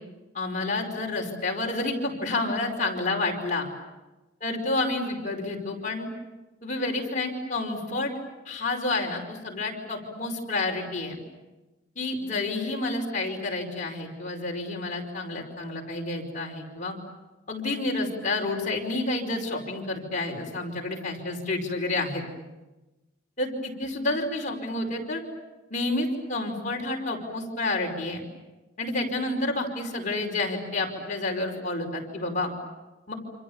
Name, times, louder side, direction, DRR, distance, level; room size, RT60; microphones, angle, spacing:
voice 1, 0.3-3.7 4.4-6.1 6.6-8.1 8.5-11.2 12.0-17.0 17.5-22.2 23.4-25.2 25.7-28.2 28.8-32.5 33.1-33.2, left 2 dB, 40° left, 0 dB, 5.2 m, -29 dB
29.0 x 27.0 x 7.3 m, 1.1 s
head